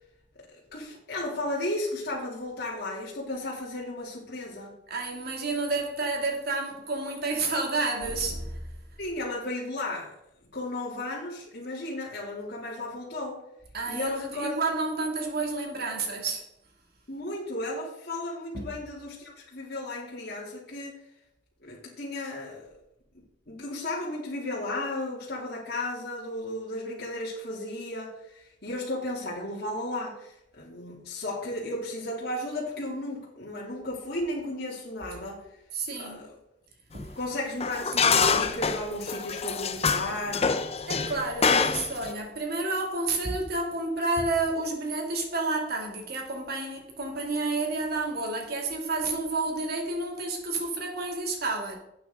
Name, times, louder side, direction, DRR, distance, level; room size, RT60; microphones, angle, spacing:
voice 1, 0.7-4.7 9.0-10.1 10.5-13.4 13.9-14.6 17.1-21.0 21.6-22.7 23.1-35.4 36.0-36.3 37.2-40.6, left 1 dB, 60° left, 3.0 m, -34 dB
voice 2, 4.9-8.7 13.7-16.5 18.5-18.6 35.7-36.3 36.9-37.2 40.9-51.8, right 3 dB, 60° right, 2.6 m, -30 dB
sound 1, 37.0-37.1 37.6-42.1, left 5 dB, 35° left, 0.7 m, -25 dB
12.5 x 8.4 x 3.8 m
head